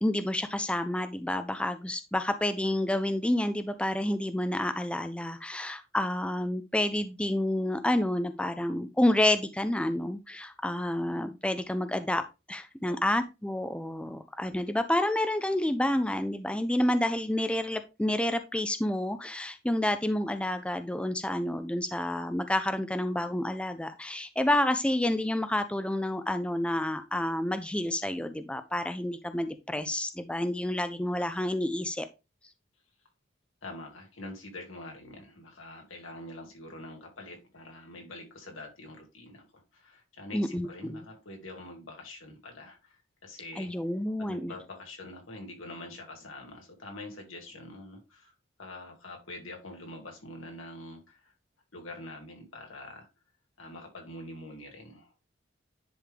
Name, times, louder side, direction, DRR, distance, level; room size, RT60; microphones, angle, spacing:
voice 1, 0.0-12.2 12.5-32.1 40.3-41.0 43.6-44.5, left 1 dB, 5° left, 10 dB, 0.4 m, -29 dB
voice 2, 33.6-43.7 44.2-48.3 48.6-51.3 51.7-53.1 53.6-55.2, left 1 dB, 90° left, 2 dB, 2.3 m, -45 dB
10.0 x 3.6 x 3.4 m, 0.27 s
head